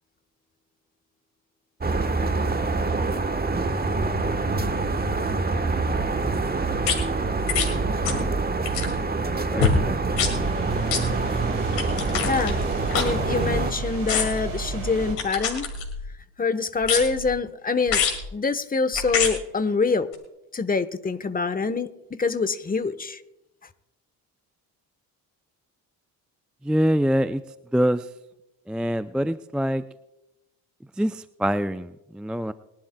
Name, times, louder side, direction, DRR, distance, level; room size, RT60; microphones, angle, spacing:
sound 1, 1.8-13.7, right 3 dB, 20° right, 1.2 m, -26 dB
sound 2, 6.8-7.0 7.5-7.7 8.0-8.3 8.6-9.0 9.6-9.8 10.1-10.3 10.9-11.0 11.7-13.6 14.1-14.5 15.2-16.1 16.8-17.3 17.9-18.2 18.9-19.3 20.1-20.2, left 6 dB, 85° left, 2.4 m, -26 dB
voice 1, 9.5-10.0 26.6-27.4 27.7-28.1 28.7-29.8 31.0-32.5, equal, ahead, 13 dB, 0.4 m, -24 dB
sound 3, 10.2-15.2, right 3 dB, 70° right, 4.5 m, -32 dB
voice 2, 12.2-12.6 12.9-15.7 16.4-18.0 18.3-20.1 20.5-23.2, left 4 dB, 20° left, 12 dB, 1.1 m, -25 dB
22.0 x 11.5 x 2.3 m, 0.94 s
hypercardioid pair, 50°, 48 cm